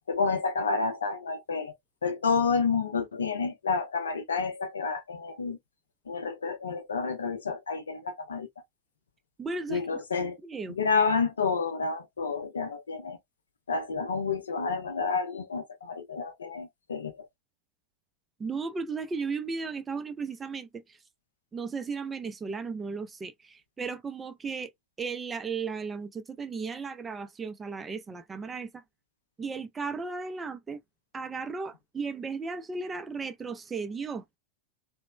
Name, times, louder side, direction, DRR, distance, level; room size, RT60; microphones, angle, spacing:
voice 1, 0.1-1.7 2.0-5.6 6.1-8.5 9.7-10.4 10.8-13.2 13.7-17.3, left 4 dB, 70° left, 0.5 m, -29 dB
voice 2, 9.4-9.8 10.2-10.8 18.4-20.8 21.5-24.7 25.0-28.8 29.4-30.8 31.1-34.2, right 4 dB, 15° right, 0.4 m, -35 dB
2.9 x 2.1 x 2.2 m
figure-of-eight pair, 90°, 0 cm